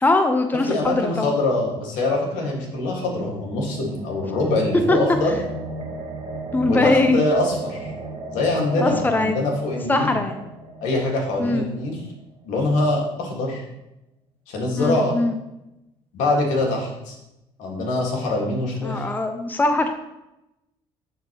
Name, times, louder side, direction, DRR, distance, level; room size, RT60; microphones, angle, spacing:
voice 1, 0.0-1.3 4.9-5.0 6.5-7.2 8.8-9.4 9.9-10.4 11.4-11.7 14.8-15.4 18.8-19.9, left 2 dB, 15° left, 6 dB, 0.7 m, -21 dB
voice 2, 0.7-5.4 6.6-7.9 8.3-10.2 10.8-12.0 12.4-13.6 14.5-15.2 16.1-17.2 17.6-19.1, left 2 dB, 75° left, -1 dB, 1.8 m, -24 dB
sound 1, 2.7-12.4, right 2 dB, 45° right, 1.7 m, -36 dB
11.5 x 3.8 x 2.9 m, 0.92 s
hypercardioid pair, 60°, 13 cm